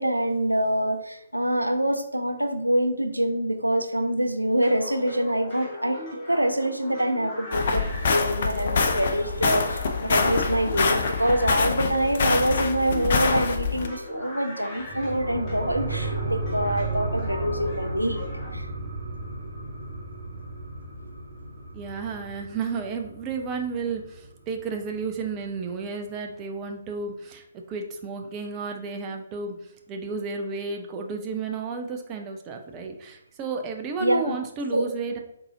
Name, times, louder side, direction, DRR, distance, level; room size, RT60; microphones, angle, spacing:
voice 1, 0.0-6.0 6.3-18.2 18.5-18.7 34.0-34.4 34.7-34.9, right 1 dB, 85° right, 6 dB, 0.4 m, -25 dB
sound 1, 4.6-18.5, left 1 dB, 25° left, 0.9 m, -39 dB
sound 2, 7.5-13.9, left 4 dB, 45° left, 0.4 m, -25 dB
sound 3, 14.8-23.9 24.3-24.4, right 2 dB, 50° right, 1.2 m, -33 dB
voice 2, 21.7-35.2, right 4 dB, 20° right, 3 dB, 0.4 m, -32 dB
3.9 x 2.6 x 2.7 m, 0.75 s
figure-of-eight pair, 130°, 0 cm